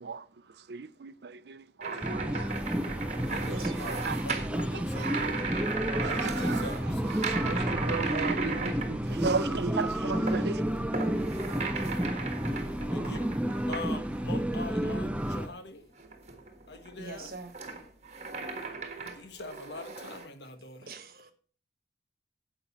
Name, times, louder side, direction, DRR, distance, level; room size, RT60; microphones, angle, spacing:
voice 1, 0.7-2.5 3.0-3.1 3.7-4.2 4.7-5.1 5.9-6.6 7.2-10.6, right 4 dB, 70° right, 0.5 m, -35 dB
sound 1, 1.8-9.4 9.8-14.3 14.8-15.4 16.0-20.3, right 4 dB, 40° right, 1.6 m, -37 dB
sound 2, 2.0-15.5, equal, 5° right, 0.5 m, -31 dB
voice 2, 3.2-5.4 6.0-7.0 12.9-13.2 13.7-15.8 16.7-17.3 19.0-20.9, left 2 dB, 80° left, 1.3 m, -43 dB
voice 3, 17.0-17.5 20.8-21.3, right 3 dB, 55° right, 1.4 m, -42 dB
10.0 x 7.9 x 4.2 m
head